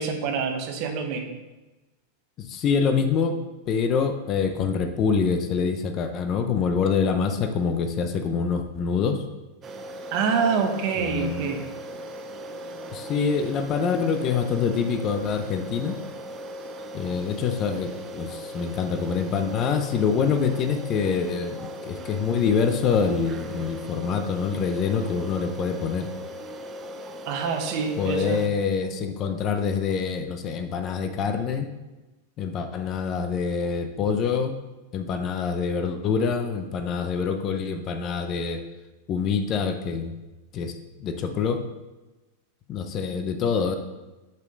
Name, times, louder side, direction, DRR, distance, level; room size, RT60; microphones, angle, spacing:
voice 1, 0.0-1.4 10.1-11.6 27.3-28.4, right 5 dB, 50° right, 5 dB, 1.0 m, -26 dB
voice 2, 2.4-3.4 3.7-9.2 11.0-11.6 12.9-16.0 16.9-26.1 28.0-31.7 32.4-34.5 34.9-38.6 39.1-40.1 40.5-40.7 41.0-41.6 42.7-43.7, left 6 dB, 35° left, 7 dB, 0.6 m, -25 dB
sound 1, 9.6-28.5, equal, 25° right, 0.5 m, -38 dB
5.4 x 4.9 x 5.2 m, 1.1 s
supercardioid pair, 130°, 0 cm